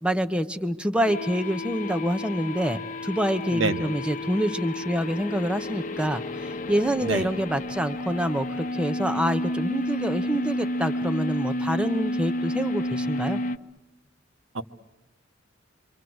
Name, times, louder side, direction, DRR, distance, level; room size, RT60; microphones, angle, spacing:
voice 1, 0.0-13.4, equal, 5° right, 9 dB, 0.9 m, -27 dB
sound 1, 1.1-13.6, left 1 dB, 40° left, 1.0 m, -31 dB
voice 2, 3.5-3.9 7.0-7.3 14.5-14.6, right 3 dB, 80° right, 8 dB, 1.3 m, -26 dB
28.0 x 25.5 x 8.0 m, 0.97 s
head